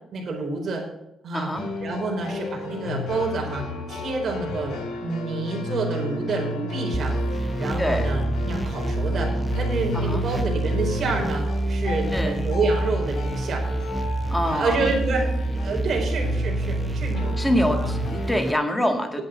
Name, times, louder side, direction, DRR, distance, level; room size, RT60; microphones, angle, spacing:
voice 1, 0.1-0.9 1.2-1.5 1.8-13.7 14.5-15.4 15.6-17.3 17.7-17.9, right 3 dB, 50° right, 1 dB, 4.3 m, -28 dB
voice 2, 1.3-1.6 7.8-8.1 9.9-10.2 12.1-12.4 14.3-14.8 17.4-19.2, equal, 10° left, 4 dB, 2.1 m, -25 dB
sound 1, 1.5-18.3, left 2 dB, 70° left, 5.1 m, -32 dB
sound 2, 6.9-18.5, right 2 dB, 10° right, 0.5 m, -27 dB
10.0 x 8.9 x 6.3 m, 0.86 s
cardioid pair, 90°, 0 cm